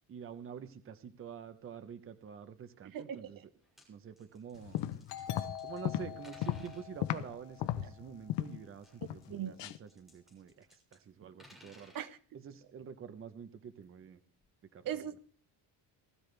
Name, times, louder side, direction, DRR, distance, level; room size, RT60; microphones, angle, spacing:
voice 1, 0.1-3.4 3.9-4.8 5.6-11.9 12.3-14.2 14.7-14.9, right 7 dB, 30° right, 10 dB, 0.9 m, -47 dB
voice 2, 2.9-3.3 9.3-9.5 11.9-12.2 14.8-15.2, right 10 dB, 55° right, 13 dB, 0.9 m, -38 dB
sound 1, 3.5-3.9 4.2-5.9 6.2-6.9 8.7-11.0 11.2-12.1 13.8-13.9 14.4-14.5, left 1 dB, ahead, 6.6 m, -60 dB
sound 2, 4.6-7.3 7.6-8.6 9.0-9.3 9.6-9.8, left 13 dB, 85° left, 0.9 m, -36 dB
Doorbell, 5.1-8.4, left 8 dB, 70° left, 3.5 m, -47 dB
20.0 x 13.5 x 3.4 m, 0.43 s
cardioid pair, 170°, 41 cm